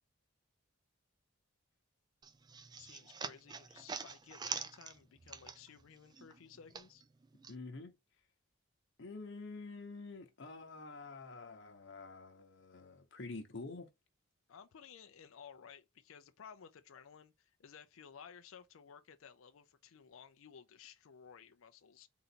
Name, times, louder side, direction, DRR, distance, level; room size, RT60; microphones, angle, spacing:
sound 1, 2.2-5.9 6.1-7.6, right 5 dB, 20° right, 0.3 m, -45 dB
voice 1, 2.8-7.0 14.5-22.1, left 7 dB, 75° left, 0.5 m, -56 dB
voice 2, 7.5-7.9 9.0-13.9, left 3 dB, 60° left, 0.9 m, -48 dB
4.0 x 2.5 x 4.3 m
head